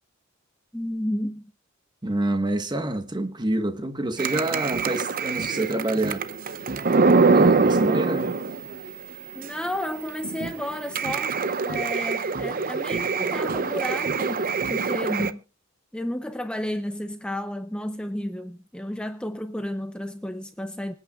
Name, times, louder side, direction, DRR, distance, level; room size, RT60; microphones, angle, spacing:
voice 1, 0.7-1.5 9.3-11.4 11.6-15.4 15.9-20.9, left 1 dB, 5° left, 0.6 m, -32 dB
voice 2, 2.0-6.3 7.3-8.3, right 1 dB, 20° right, 1.3 m, -27 dB
sound 1, 4.2-8.9 9.4-9.5 9.9-10.0 10.2-15.3, right 4 dB, 45° right, 0.7 m, -24 dB
26.0 x 8.9 x 2.4 m
head